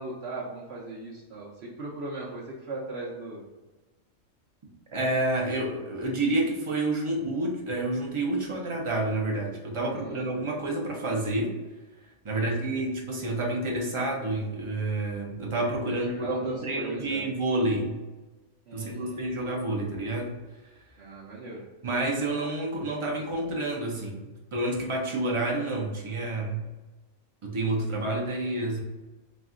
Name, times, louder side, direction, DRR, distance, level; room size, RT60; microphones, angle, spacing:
voice 1, 0.0-3.4 9.8-10.4 12.3-12.8 15.9-17.3 18.7-19.2 21.0-21.7, right 2 dB, 60° right, -5 dB, 0.9 m, -39 dB
voice 2, 4.9-11.5 12.2-18.0 18.7-20.4 21.8-24.2 24.5-26.6 27.4-28.8, right 2 dB, 35° right, -1 dB, 0.5 m, -29 dB
4.2 x 2.3 x 3.6 m, 1.2 s
omnidirectional pair, 1.4 m